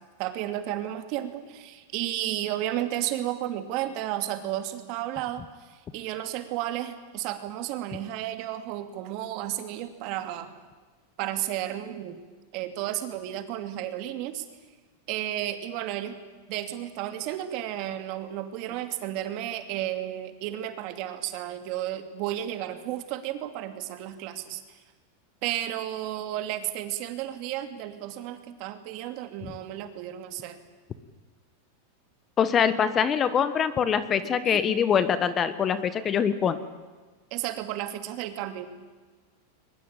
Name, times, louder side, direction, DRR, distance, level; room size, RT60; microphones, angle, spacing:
voice 1, 0.2-10.5 11.2-12.2 12.5-14.4 15.1-16.2 16.5-24.8 25.4-30.6 34.4-34.8 37.3-38.7, right 13 dB, 50° right, 8 dB, 2.7 m, -33 dB
voice 2, 32.4-36.6, left 7 dB, 25° left, 13 dB, 1.3 m, -24 dB
22.0 x 21.5 x 9.0 m, 1.4 s
supercardioid pair, 145°, 0 cm